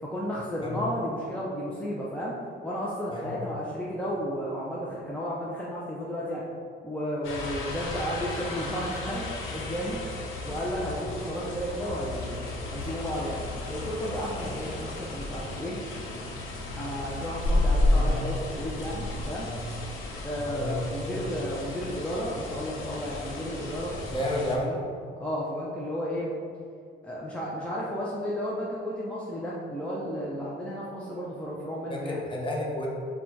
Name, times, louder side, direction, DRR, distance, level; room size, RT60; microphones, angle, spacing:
voice 1, 0.0-2.4 2.6-6.4 6.8-10.0 10.5-12.4 12.7-13.4 13.7-15.8 16.8-19.5 20.2-24.8 25.2-26.3 27.0-32.2, equal, 5° left, -6 dB, 0.6 m, -33 dB
voice 2, 3.1-3.4 17.9-18.2 20.4-21.2 23.9-24.7 31.9-32.9, left 1 dB, 25° left, -3 dB, 0.9 m, -32 dB
sound 1, 7.2-24.6, left 2 dB, 85° left, 0.7 m, -32 dB
3.8 x 2.3 x 4.5 m, 2.3 s
cardioid pair, 90°, 20 cm